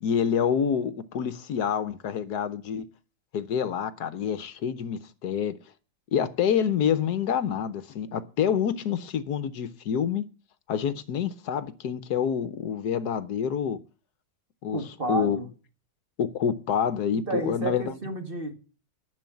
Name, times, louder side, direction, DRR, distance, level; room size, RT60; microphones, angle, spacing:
voice 1, 0.0-2.9 3.3-5.6 6.1-10.2 10.7-13.8 14.6-14.8 15.1-15.4 16.2-17.9, left 8 dB, 70° left, 1.4 m, -27 dB
voice 2, 14.7-15.5 17.1-18.5, right 2 dB, 35° right, 2.0 m, -31 dB
11.0 x 7.0 x 9.3 m
omnidirectional pair, 1.8 m